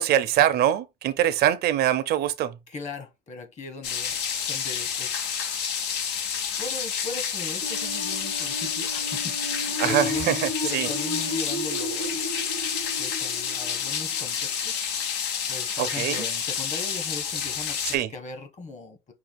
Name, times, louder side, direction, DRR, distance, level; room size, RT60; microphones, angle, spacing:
voice 1, 0.0-2.5 9.8-10.9 15.8-16.2 17.9-18.1, right 11 dB, 70° right, 0.6 m, -23 dB
voice 2, 2.7-5.9 6.6-12.1 13.0-14.9 15.5-19.1, left 3 dB, 45° left, 1.4 m, -39 dB
sound 1, 3.8-18.0, left 7 dB, 90° left, 1.0 m, -29 dB
sound 2, 7.6-14.5, left 1 dB, 60° left, 2.0 m, -34 dB
5.5 x 2.3 x 4.1 m
cardioid pair, 110°, 17 cm